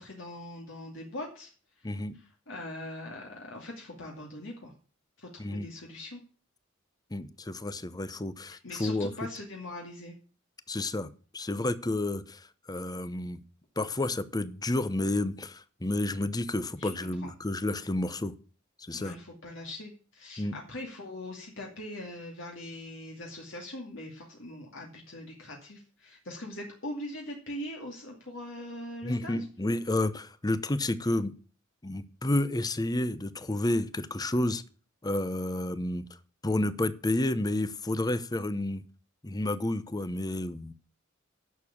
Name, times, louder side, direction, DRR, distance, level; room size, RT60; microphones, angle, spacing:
voice 1, 0.0-4.7 5.2-6.2 8.4-10.1 16.8-17.3 18.9-29.5, left 1 dB, 65° left, -1 dB, 2.4 m, -42 dB
voice 2, 1.8-2.1 5.4-5.7 7.1-9.1 10.7-13.4 13.8-18.3 18.8-19.2 20.4-20.6 29.0-31.3 31.8-34.6 35.0-36.0 36.4-38.8 39.2-40.7, left 1 dB, 20° left, 14 dB, 0.8 m, -30 dB
11.0 x 6.8 x 7.2 m, 0.40 s
head